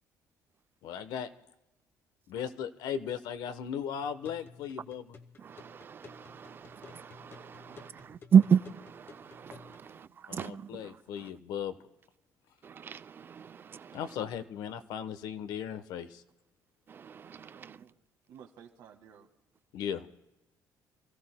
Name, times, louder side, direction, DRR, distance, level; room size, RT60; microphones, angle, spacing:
voice 1, 0.8-1.3 2.3-5.1 10.3-11.8 13.9-16.2 19.7-20.1, left 8 dB, 85° left, 1.0 m, -37 dB
sound 1, 4.0-9.9, left 5 dB, 35° left, 1.1 m, -54 dB
voice 2, 5.4-11.3 12.6-14.2 16.9-17.9, right 7 dB, 30° right, 0.4 m, -31 dB
voice 3, 7.7-8.3 9.8-10.5 17.5-18.0 18.3-19.3, right 8 dB, 85° right, 1.7 m, -56 dB
28.5 x 15.0 x 2.2 m
cardioid pair, 140°, 7 cm